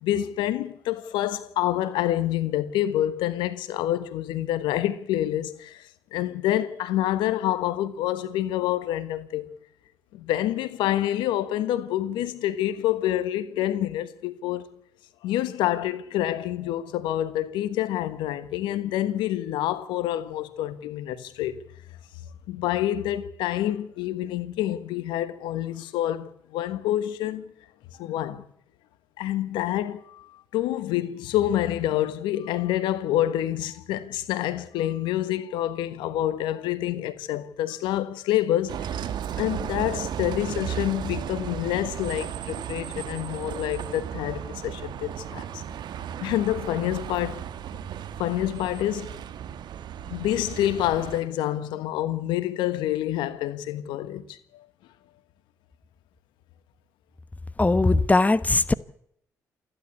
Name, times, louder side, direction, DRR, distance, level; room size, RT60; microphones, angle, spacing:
voice 1, 0.0-9.5 10.1-14.7 15.2-21.6 22.5-27.5 28.0-28.4 29.2-39.1 39.3-45.6 46.2-47.4 48.2-49.2 50.1-54.7, left 13 dB, 80° left, 1.3 m, -27 dB
Bus, 38.7-51.2, right 9 dB, 65° right, 1.3 m, -35 dB
voice 2, 57.6-58.7, left 2 dB, 20° left, 1.1 m, -20 dB
28.5 x 11.5 x 8.3 m
hypercardioid pair, 45°, 8 cm